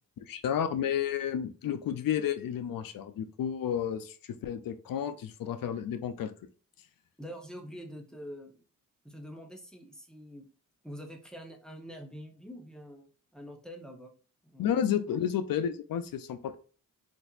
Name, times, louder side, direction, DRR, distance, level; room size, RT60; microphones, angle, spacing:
voice 1, 0.2-6.3 14.6-16.6, left 9 dB, 85° left, 11 dB, 0.5 m, -31 dB
voice 2, 7.2-8.6 9.0-10.5 10.8-13.1 13.3-14.1 14.4-14.7 15.1-15.2, equal, ahead, 2 dB, 0.8 m, -45 dB
4.1 x 2.6 x 2.4 m, 0.39 s
cardioid pair, 75°, 33 cm